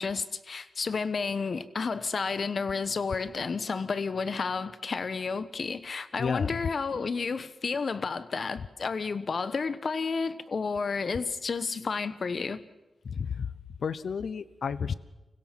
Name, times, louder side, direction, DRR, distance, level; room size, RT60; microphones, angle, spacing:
voice 1, 0.0-12.6, left 4 dB, 55° left, 15 dB, 1.1 m, -31 dB
voice 2, 6.2-6.6 13.0-13.5 13.8-14.9, left 6 dB, 70° left, 17 dB, 0.8 m, -31 dB
25.0 x 16.5 x 7.4 m, 1.1 s
wide cardioid pair, 95°, 0 cm